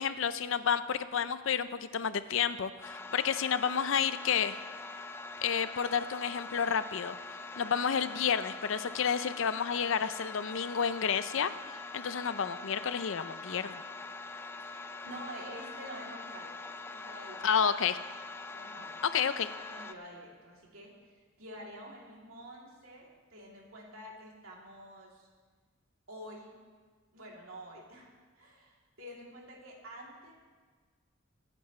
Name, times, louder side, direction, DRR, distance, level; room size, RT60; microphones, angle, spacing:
voice 1, 0.0-4.6 5.4-7.1 7.6-13.8 17.4-18.0 19.0-19.5, left 7 dB, 65° left, 13 dB, 0.5 m, -30 dB
sound 1, 2.8-19.9, left 3 dB, 10° left, 0.4 m, -44 dB
voice 2, 15.0-16.5 16.9-17.5 18.5-18.9 19.7-20.9 21.4-25.3 26.1-26.5 27.1-30.3, equal, 80° right, -3 dB, 3.1 m, -48 dB
24.0 x 9.6 x 3.2 m, 1.5 s
head